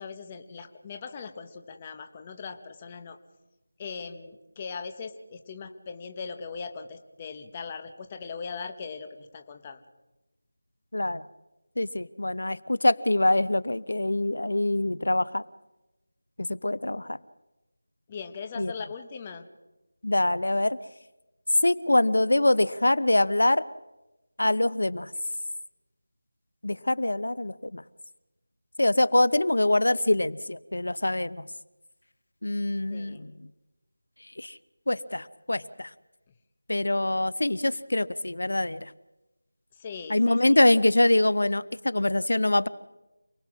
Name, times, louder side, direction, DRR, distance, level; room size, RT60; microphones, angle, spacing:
voice 1, 0.0-3.2 3.8-9.8 18.1-19.4 32.9-33.3 39.8-40.6, left 5 dB, 15° left, 7 dB, 1.1 m, -40 dB
voice 2, 10.9-11.2 11.8-15.4 16.5-17.2 18.6-18.7 20.0-20.8 21.6-23.6 24.4-25.1 26.6-27.8 28.8-31.5 32.4-33.3 34.4-34.6 34.9-35.9 36.7-38.9 40.1-42.7, left 1 dB, 80° left, 18 dB, 0.8 m, -24 dB
28.0 x 19.5 x 6.2 m, 1.0 s
figure-of-eight pair, 175°, 0 cm